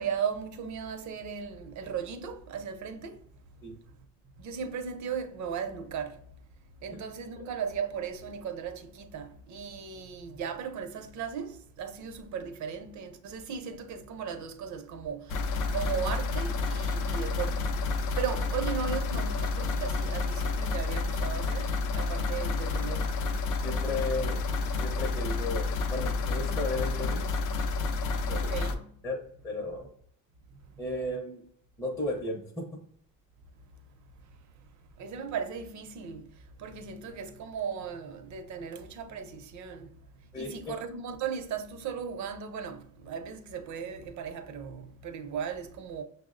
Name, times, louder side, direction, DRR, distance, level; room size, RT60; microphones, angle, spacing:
voice 1, 0.0-3.2 4.4-6.1 6.8-15.3 15.7-17.6 18.2-21.7 21.9-23.1 28.3-28.8 35.0-36.3 36.6-39.9 40.4-46.0, right 7 dB, 60° right, 0.6 m, -36 dB
sound 1, 15.3-28.7, left 3 dB, 70° left, 0.5 m, -30 dB
voice 2, 23.6-24.5 24.8-27.4 28.0-29.9 30.8-31.5 31.8-32.8 40.3-40.7, left 2 dB, 10° left, 0.5 m, -35 dB
5.8 x 2.0 x 2.4 m
cardioid pair, 125°, 33 cm